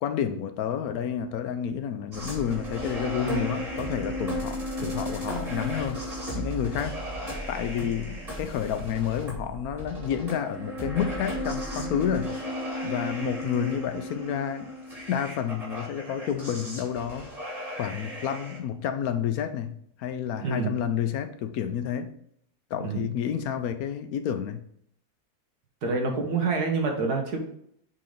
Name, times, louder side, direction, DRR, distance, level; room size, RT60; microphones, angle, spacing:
voice 1, 0.0-6.1 6.3-7.0 7.5-12.3 12.8-14.7 15.1-17.3 17.8-22.1 22.7-24.6, left 8 dB, 75° left, 9 dB, 1.1 m, -30 dB
sound 1, 2.1-18.6, equal, 25° right, 2.5 m, -35 dB
voice 2, 20.4-20.8 22.8-23.1 25.8-27.4, right 4 dB, 90° right, 2 dB, 1.9 m, -27 dB
7.6 x 3.8 x 3.8 m, 0.69 s
omnidirectional pair, 1.6 m